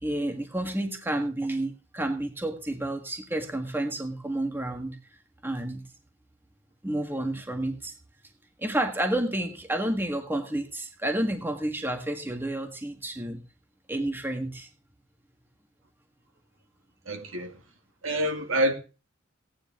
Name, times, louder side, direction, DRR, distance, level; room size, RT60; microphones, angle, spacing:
voice 1, 0.0-5.0 5.4-5.8 6.8-7.9 8.6-13.4 13.9-14.7, right 1 dB, 10° right, 1.6 m, -30 dB
voice 2, 17.1-17.5 18.0-18.7, right 1 dB, 70° right, 2.5 m, -26 dB
17.0 x 10.0 x 3.7 m
head